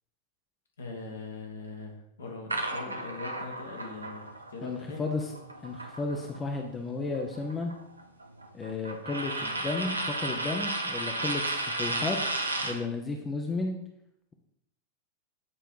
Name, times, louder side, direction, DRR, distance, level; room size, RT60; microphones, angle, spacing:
voice 1, 0.8-5.0 12.7-12.9, left 3 dB, 70° left, 1 dB, 1.5 m, -41 dB
sound 1, 2.5-6.6 6.9-12.8, right 2 dB, 80° right, 0.6 m, -34 dB
voice 2, 4.6-5.3 5.6-7.7 8.5-13.8, left 3 dB, 20° left, 2 dB, 0.7 m, -33 dB
8.5 x 3.3 x 4.7 m, 0.79 s
figure-of-eight pair, 90°, 0 cm